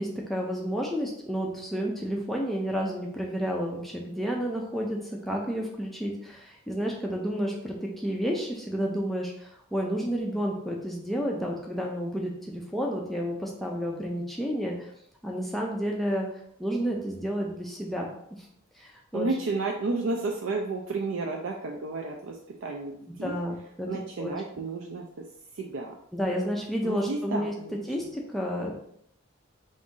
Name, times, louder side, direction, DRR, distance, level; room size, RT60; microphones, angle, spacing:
voice 1, 0.0-14.9 15.2-16.3 16.6-18.2 18.8-19.3 23.2-24.3 26.1-27.5 27.9-28.8, equal, ahead, -2 dB, 0.5 m, -31 dB
voice 2, 19.1-23.3 23.9-25.0 25.5-25.9 26.8-27.8, right 3 dB, 80° right, 1 dB, 0.4 m, -32 dB
4.0 x 2.6 x 3.7 m, 0.70 s
head